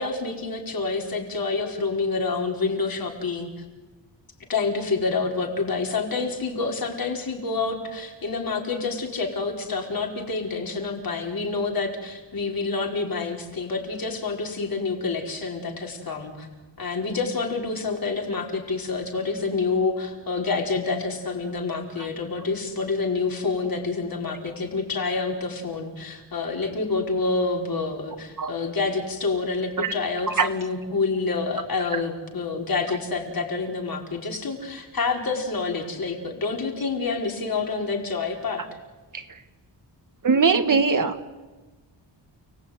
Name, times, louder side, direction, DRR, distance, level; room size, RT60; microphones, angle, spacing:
voice 1, 0.0-3.5 4.5-16.5 16.8-38.6, left 4 dB, 50° left, 2 dB, 4.6 m, -28 dB
voice 2, 40.2-41.3, right 5 dB, 45° right, 9 dB, 1.5 m, -21 dB
30.0 x 19.0 x 9.5 m, 1.2 s
wide cardioid pair, 160°, 45 cm